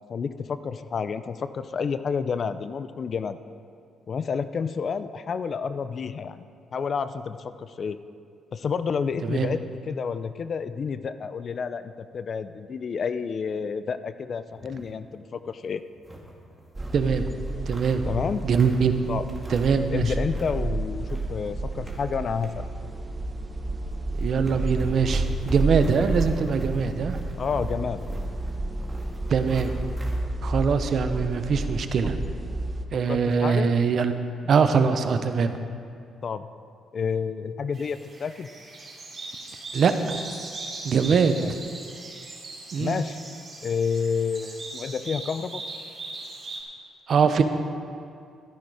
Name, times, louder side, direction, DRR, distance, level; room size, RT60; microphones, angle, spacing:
voice 1, 0.0-3.4 4.1-6.5 6.7-8.0 8.5-9.6 9.9-15.8 18.1-18.4 19.1-19.3 19.9-22.7 27.4-28.0 33.1-33.7 36.2-36.5 36.9-38.5 41.4-41.5 42.8-43.2 43.6-45.6, left 6 dB, 50° left, 12 dB, 0.5 m, -29 dB
sound 1, 14.5-15.0 15.4-15.5 15.8-17.0 17.5-18.9 19.3-19.9 20.1-20.6 20.9-22.5 22.9-23.1 23.8-23.9 24.1-30.2, right 1 dB, 5° right, 2.1 m, -40 dB
sound 2, 16.7-32.8, right 2 dB, 25° right, 1.1 m, -31 dB
voice 2, 16.9-17.3 17.7-18.1 18.4-18.9 19.5-20.1 24.2-27.2 29.3-29.8 30.4-32.2 32.9-35.6 39.7-40.2 40.8-41.6 42.7-43.0 47.1-47.4, right 6 dB, 55° right, 9 dB, 0.8 m, -23 dB
sound 3, 37.7-46.6, right 2 dB, 40° right, 3.2 m, -39 dB
13.0 x 10.5 x 4.9 m, 2.4 s
cardioid pair, 90°, 0 cm